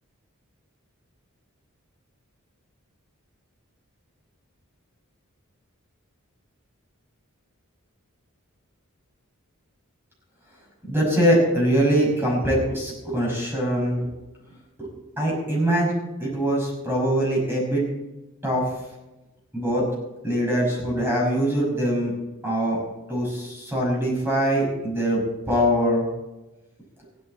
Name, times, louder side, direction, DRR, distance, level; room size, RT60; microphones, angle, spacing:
voice 1, 10.9-14.1 14.8-14.9 15.2-15.9 16.2-17.8 18.4-18.7 19.5-19.8 20.2-22.1 22.4-22.8 23.1-25.2 25.5-26.1, equal, 10° right, -2 dB, 5.7 m, -22 dB
15.5 x 11.5 x 4.3 m, 1.0 s
head